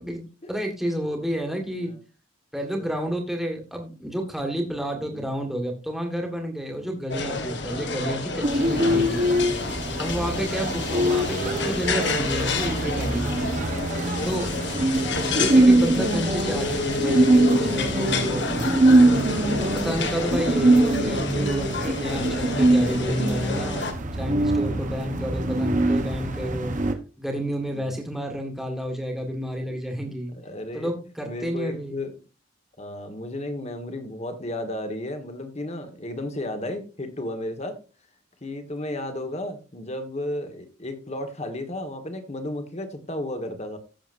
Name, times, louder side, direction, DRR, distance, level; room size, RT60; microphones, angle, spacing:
voice 1, 0.0-1.9 2.5-9.3 10.0-13.3 14.2-14.5 15.0-18.7 19.7-23.8 24.1-26.8 27.2-30.3 30.7-32.0, equal, ahead, 1 dB, 1.8 m, -30 dB
sound 1, 7.1-23.9, left 3 dB, 60° left, 1.6 m, -30 dB
sound 2, 8.4-26.9, right 1 dB, 40° right, 1.2 m, -23 dB
voice 2, 10.1-10.6 14.1-14.8 19.2-21.0 24.6-25.2 27.7-27.9 29.7-30.9 31.2-32.1 32.8-37.8 38.4-43.8, left 1 dB, 30° left, 7 dB, 1.5 m, -34 dB
15.5 x 7.1 x 2.6 m, 0.33 s
head